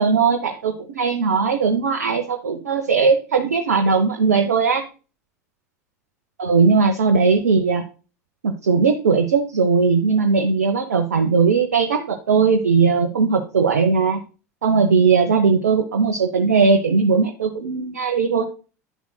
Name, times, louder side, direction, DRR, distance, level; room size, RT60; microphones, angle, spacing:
voice 1, 0.0-4.8 6.4-7.8 8.4-14.2 14.6-18.5, right 5 dB, 70° right, 5 dB, 1.0 m, -18 dB
10.5 x 7.0 x 2.2 m, 0.34 s
figure-of-eight pair, 80°, 9 cm